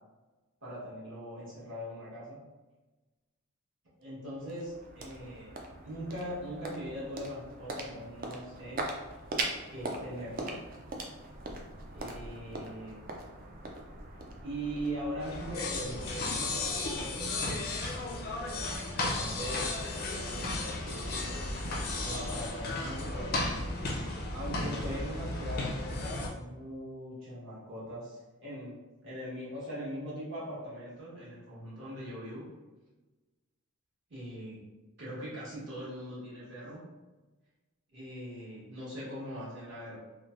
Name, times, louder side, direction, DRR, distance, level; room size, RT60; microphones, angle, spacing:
voice 1, 0.6-2.4 4.0-5.5 5.8-8.9 9.7-10.6 11.9-13.0 14.4-17.4 18.6-21.4 22.0-23.4 24.3-32.5 34.1-34.6 35.0-36.9 37.9-40.0, equal, 55° right, -9 dB, 1.2 m, -41 dB
sound 1, 4.0-16.4, right 2 dB, 40° right, 0.3 m, -41 dB
sound 2, 15.2-26.3, left 2 dB, 45° left, 0.4 m, -34 dB
3.1 x 2.1 x 2.4 m, 1.2 s
head